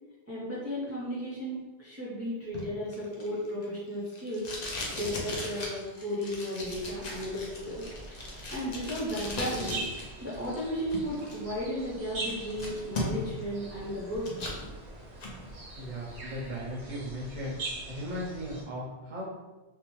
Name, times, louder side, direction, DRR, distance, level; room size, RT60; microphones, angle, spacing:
voice 1, 0.3-4.5 4.9-7.9 8.5-9.8 10.2-14.5, equal, 20° right, -8 dB, 0.4 m, -34 dB
Packing tape duct tape, 2.5-10.0 10.3-11.3 11.8-11.9 12.2-13.4 13.8-14.6 15.0-15.3, left 2 dB, 50° left, 0.5 m, -38 dB
sound 1, 6.6-18.6, right 2 dB, 85° right, 1.0 m, -43 dB
voice 2, 15.8-17.6 17.9-19.2, equal, 50° right, -5 dB, 0.7 m, -37 dB
2.7 x 2.1 x 3.0 m, 1.2 s
omnidirectional pair, 1.1 m